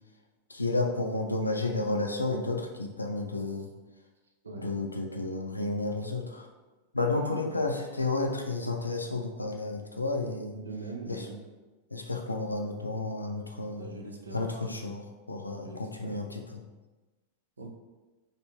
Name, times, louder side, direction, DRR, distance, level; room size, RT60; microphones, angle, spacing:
voice 1, 0.5-3.7 4.6-6.5 6.9-10.6 11.1-11.3 11.9-13.9 14.3-15.0 15.3-16.4, left 2 dB, 85° left, 3 dB, 0.3 m, -31 dB
voice 2, 4.4-4.8 7.0-7.7 10.5-11.4 13.8-14.7 15.6-16.2 17.6-17.7, right 3 dB, 75° right, 2 dB, 0.5 m, -42 dB
3.1 x 2.5 x 2.9 m, 1.2 s
figure-of-eight pair, 90°, 0 cm